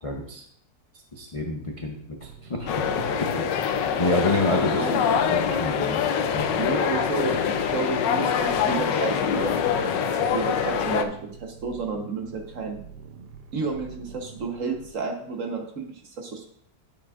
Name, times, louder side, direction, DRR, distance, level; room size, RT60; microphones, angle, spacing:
voice 1, 0.0-0.4 1.1-4.8 5.3-6.0 6.3-6.5, left 2 dB, 40° left, 0 dB, 0.4 m, -28 dB
sound 1, 2.2-14.9, right 6 dB, 70° right, 1.2 m, -45 dB
sound 2, 2.7-11.0, left 7 dB, 75° left, 1.3 m, -24 dB
voice 2, 4.5-5.0 6.6-10.1 10.3-12.8 13.5-16.5, right 4 dB, 50° right, 2 dB, 1.3 m, -31 dB
10.5 x 7.0 x 2.5 m, 0.65 s
omnidirectional pair, 2.0 m